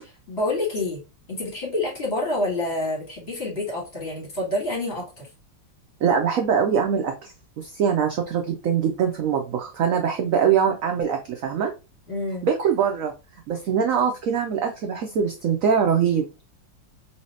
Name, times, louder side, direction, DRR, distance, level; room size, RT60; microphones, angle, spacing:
voice 1, 0.0-1.0 1.3-5.3 12.1-12.4, left 2 dB, 35° left, -3 dB, 1.6 m, -28 dB
voice 2, 6.0-11.7 12.4-13.1 13.5-16.3, right 7 dB, 75° right, 4 dB, 0.7 m, -23 dB
3.1 x 2.8 x 3.1 m, 0.28 s
omnidirectional pair, 2.0 m